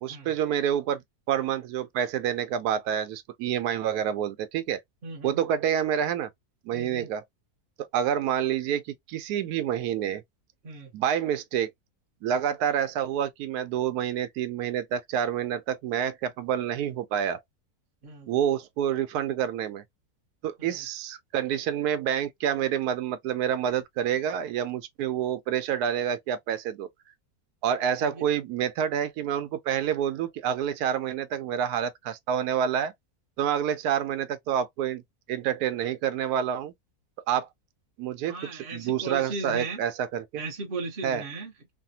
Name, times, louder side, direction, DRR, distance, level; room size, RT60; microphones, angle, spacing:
voice 1, 0.0-1.0 1.3-4.8 5.2-6.3 6.7-7.2 7.9-10.2 10.9-11.7 12.2-17.4 18.3-19.8 20.4-26.9 27.6-32.9 33.4-35.0 35.3-36.7 37.3-37.5 38.0-40.4 41.0-41.2, right 9 dB, 85° right, 1.1 m, -28 dB
voice 2, 5.0-5.4 6.7-7.1 10.6-10.9 18.0-18.3 20.6-20.8 28.0-28.2 38.3-39.8 40.4-41.7, right 3 dB, 45° right, 0.9 m, -37 dB
3.3 x 2.1 x 2.7 m
omnidirectional pair, 1.6 m